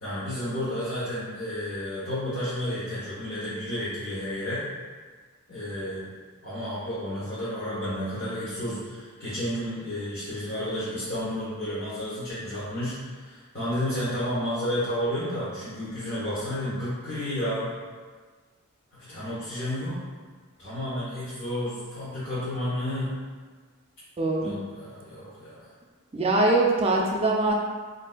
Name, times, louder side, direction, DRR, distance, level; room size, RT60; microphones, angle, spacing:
voice 1, 0.0-4.6 5.5-6.1 6.4-17.7 19.1-20.0 20.6-23.2 24.4-25.7, left 1 dB, 50° left, -11 dB, 0.9 m, -31 dB
voice 2, 24.2-24.6 26.1-27.5, right 2 dB, 30° right, -1 dB, 0.4 m, -22 dB
4.0 x 2.5 x 2.2 m, 1.5 s
head